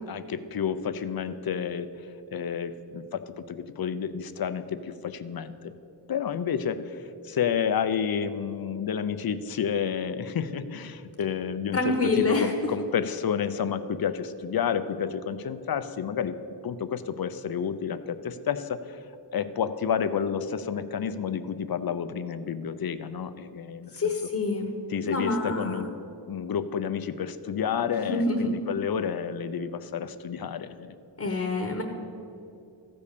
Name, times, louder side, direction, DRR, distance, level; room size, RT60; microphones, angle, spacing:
voice 1, 0.1-1.9 2.3-5.7 6.1-16.4 16.6-19.0 19.3-24.1 24.9-25.9 26.3-31.0, left 7 dB, 55° left, 12 dB, 0.6 m, -30 dB
voice 2, 11.7-12.5 24.0-24.7 25.0-25.8 27.9-28.5 31.2-31.8, left 3 dB, 35° left, 3 dB, 1.1 m, -26 dB
14.0 x 5.3 x 6.7 m, 2.7 s
wide cardioid pair, 90°, 43 cm